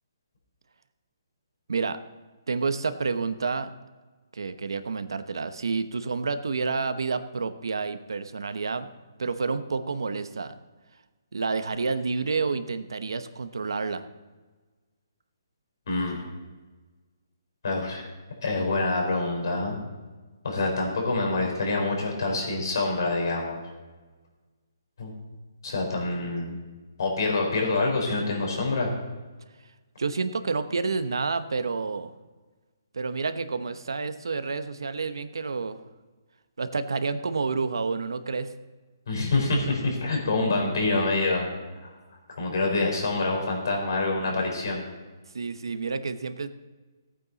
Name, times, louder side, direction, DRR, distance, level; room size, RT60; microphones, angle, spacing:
voice 1, 2.5-3.7 4.3-8.9 9.2-10.5 11.3-14.0 30.0-32.1 32.9-35.8 36.6-38.5 45.3-46.5, right 4 dB, 85° right, 10 dB, 0.9 m, -29 dB
voice 2, 15.9-16.2 17.6-18.1 18.4-19.8 20.4-23.6 25.0-25.1 25.6-26.6 27.0-28.9 39.1-41.5 41.8-41.9 42.4-44.8, left 2 dB, 60° left, 0 dB, 4.2 m, -26 dB
16.0 x 8.8 x 4.1 m, 1.3 s
hypercardioid pair, 170°, 2 cm